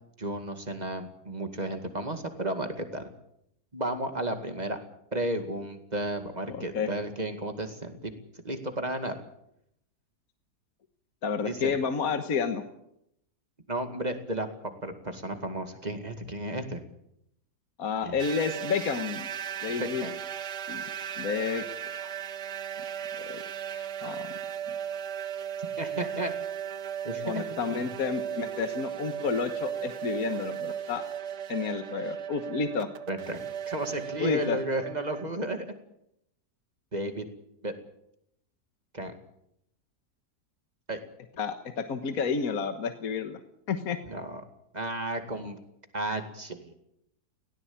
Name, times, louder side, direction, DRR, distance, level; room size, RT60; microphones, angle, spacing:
voice 1, 0.2-3.1 3.7-4.8 5.1-8.1 8.4-9.2 11.4-11.7 13.7-16.8 18.0-18.2 19.7-20.2 25.8-26.3 27.0-27.5 33.1-35.7 36.9-37.3 37.6-37.7 38.9-39.2 40.9-41.0 44.0-44.4 44.7-45.6 45.9-46.7, right 1 dB, 25° right, 7 dB, 2.2 m, -33 dB
voice 2, 6.5-6.9 11.2-12.6 17.8-19.3 19.6-20.1 20.7-20.8 21.2-21.6 22.0-22.1 23.2-23.4 23.7-24.3 24.7-24.8 27.2-31.0 31.5-32.9 34.2-34.6 41.4-43.4 43.7-44.0, left 5 dB, 65° left, 8 dB, 1.7 m, -30 dB
sound 1, 18.2-35.3, right 9 dB, 90° right, 1.6 m, -36 dB
18.5 x 17.5 x 8.8 m, 0.77 s
omnidirectional pair, 1.7 m